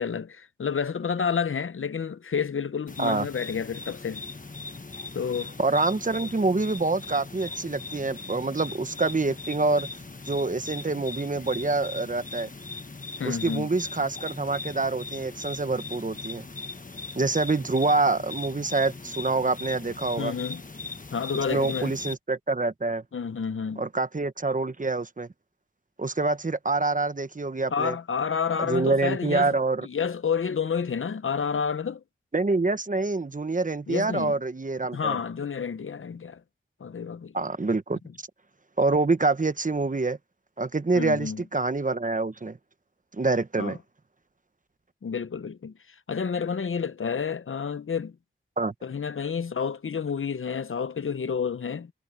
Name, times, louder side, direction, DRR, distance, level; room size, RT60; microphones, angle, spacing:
voice 1, 0.0-4.2 5.1-5.5 13.2-13.7 20.2-20.6 21.1-21.9 23.1-23.9 27.7-29.5 29.8-32.0 33.9-34.4 34.9-36.4 36.8-37.3 40.9-41.4 43.6-43.8 45.0-45.7 46.1-48.2 48.8-51.9, left 6 dB, 80° left, 0.7 m, -29 dB
sound 1, 2.9-22.1, left 3 dB, 40° left, 1.3 m, -39 dB
voice 2, 5.6-9.9 10.3-12.5 13.2-16.4 17.2-20.3 21.5-23.0 23.8-25.3 26.0-28.0 28.6-29.9 32.3-35.2 37.3-38.0 38.8-40.2 40.6-42.6 43.1-43.8 48.6-48.7, right 3 dB, 40° right, 1.0 m, -26 dB
wide cardioid pair, 65°, 21 cm